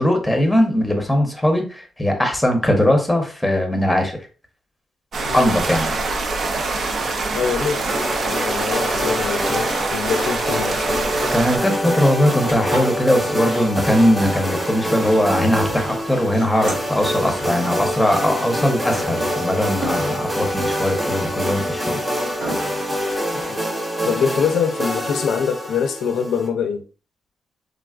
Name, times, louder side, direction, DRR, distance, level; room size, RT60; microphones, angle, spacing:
voice 1, 0.0-4.2 5.3-5.9 11.3-22.0, left 1 dB, 5° left, 0.8 m, -20 dB
sound 1, 5.1-11.6, right 3 dB, 60° right, 0.5 m, -24 dB
voice 2, 5.2-5.6 7.3-8.0 8.2-11.0 23.5-23.6 24.0-26.8, left 7 dB, 80° left, 0.4 m, -24 dB
sound 2, 7.9-26.5, equal, 25° right, 1.1 m, -25 dB
Sawing, 11.2-23.6, right 2 dB, 80° right, 1.2 m, -36 dB
3.5 x 2.3 x 2.4 m
cardioid pair, 85°, 0 cm